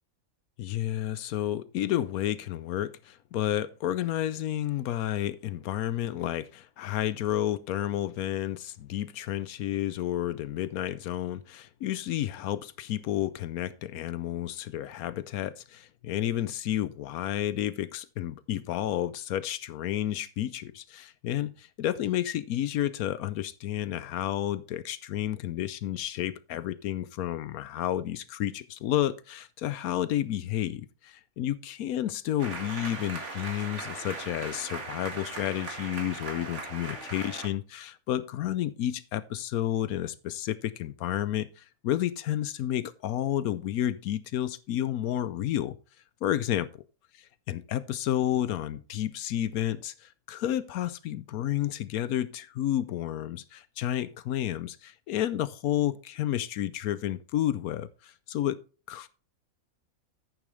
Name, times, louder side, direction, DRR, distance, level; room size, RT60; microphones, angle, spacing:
voice 1, 0.6-45.8 46.2-46.8 47.5-58.6 58.9-59.1, left 12 dB, 85° left, 1.1 m, -31 dB
sound 1, 32.4-37.5, right 3 dB, 55° right, 2.2 m, -39 dB
10.0 x 9.2 x 3.1 m
omnidirectional pair, 1.5 m